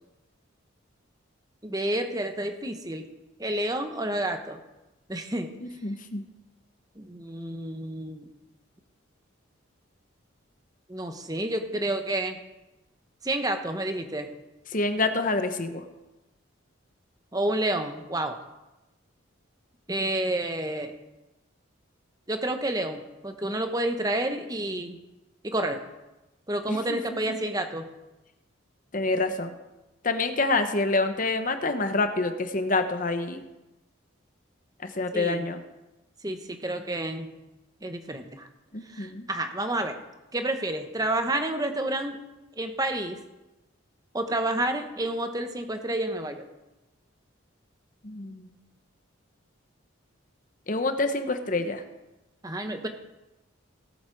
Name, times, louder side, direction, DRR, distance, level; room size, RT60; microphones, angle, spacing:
voice 1, 1.6-3.1 3.4-4.6 5.1-5.5 7.0-8.3 10.9-12.4 13.2-14.3 17.3-18.4 19.9-20.9 22.3-25.0 25.4-25.8 26.5-27.9 35.1-35.5 36.2-37.3 37.8-38.5 38.9-40.0 40.3-42.2 42.6-43.2 44.1-46.4 52.4-52.9, right 1 dB, 20° right, 6 dB, 1.0 m, -29 dB
voice 2, 5.6-6.2 14.7-15.8 26.7-27.0 27.3-27.4 28.9-29.5 30.0-33.5 34.8-35.6 38.7-39.3 48.0-48.5 50.7-51.8, left 3 dB, 40° left, 8 dB, 0.9 m, -27 dB
18.0 x 7.3 x 4.6 m, 1.0 s
head